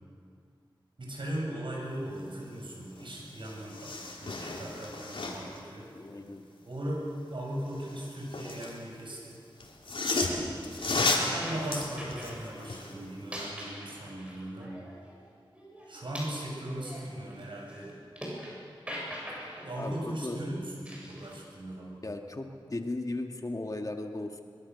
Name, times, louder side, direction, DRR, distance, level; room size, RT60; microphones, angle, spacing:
voice 1, 1.0-5.9 6.6-9.4 11.3-14.7 15.9-18.0 19.6-22.0, right 1 dB, 65° right, -1 dB, 7.4 m, -38 dB
sound 1, 3.0-3.1 3.3-5.6 7.7-8.8 9.6-13.0 13.4-13.5, left 3 dB, 85° left, 3.6 m, -33 dB
voice 2, 5.9-6.5 19.8-20.4 22.0-24.4, left 2 dB, 40° left, 4 dB, 1.9 m, -36 dB
sound 2, 11.4-12.4 13.1-15.2 15.5-18.6 18.9-19.7 20.8-21.4, equal, 15° right, 7.9 m, -42 dB
23.0 x 22.5 x 7.0 m, 2.2 s
wide cardioid pair, 65°, 9 cm